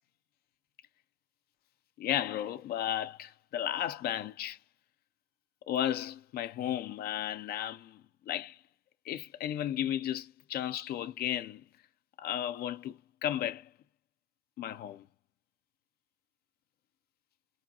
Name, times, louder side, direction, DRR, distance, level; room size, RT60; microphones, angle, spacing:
voice 1, 2.0-4.6 5.7-8.6 9.1-11.6 12.2-13.7 14.6-15.0, left 11 dB, 65° left, 0.4 m, -34 dB
4.9 x 2.7 x 2.7 m
cardioid pair, 110°, 17 cm